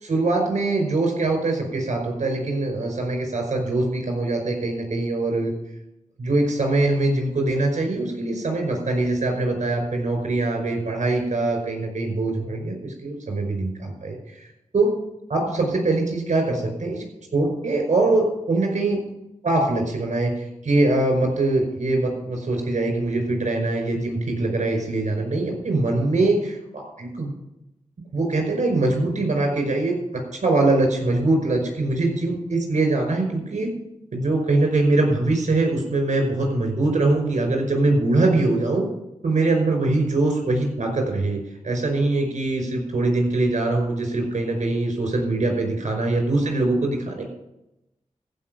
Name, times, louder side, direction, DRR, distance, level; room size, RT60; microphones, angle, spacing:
voice 1, 0.0-5.5 6.2-14.4 14.7-14.9 15.3-17.0 17.3-19.0 19.4-27.3 28.1-33.7 34.1-38.8 39.2-41.4 41.6-47.2, right 2 dB, 70° right, 3 dB, 5.3 m, -23 dB
15.0 x 5.9 x 9.2 m, 0.89 s
cardioid pair, 45°, 13 cm